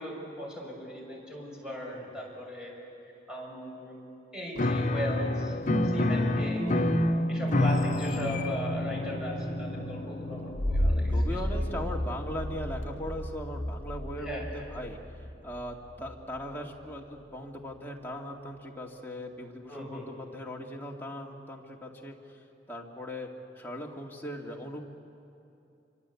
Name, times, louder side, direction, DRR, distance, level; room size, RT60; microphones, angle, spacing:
voice 1, 0.0-2.7 3.3-4.0 4.3-5.5 5.8-6.8 7.3-11.7 14.2-14.7 19.7-20.1, equal, 5° right, -3 dB, 6.5 m, -38 dB
voice 2, 1.7-2.1 11.1-15.0 15.4-22.2 22.7-23.3 23.6-24.8, equal, 10° left, -1 dB, 2.3 m, -39 dB
Piano, 4.5-13.0, left 2 dB, 45° left, 0.7 m, -31 dB
sound 1, 5.7-16.1 16.5-16.6, equal, 35° right, 5.1 m, -32 dB
26.5 x 25.0 x 8.4 m, 2.7 s
head